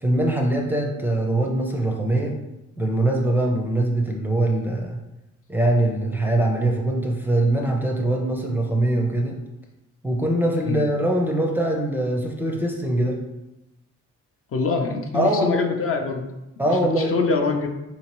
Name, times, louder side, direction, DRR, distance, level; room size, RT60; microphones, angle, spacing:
voice 1, 0.0-2.4 2.8-5.0 5.5-9.3 10.0-13.2 15.1-15.6 16.6-17.1, right 1 dB, 5° right, -1 dB, 0.5 m, -22 dB
voice 2, 14.5-16.2 16.6-17.7, left 4 dB, 45° left, 3 dB, 0.6 m, -24 dB
3.5 x 2.8 x 3.0 m, 0.93 s
cardioid pair, 90°, 30 cm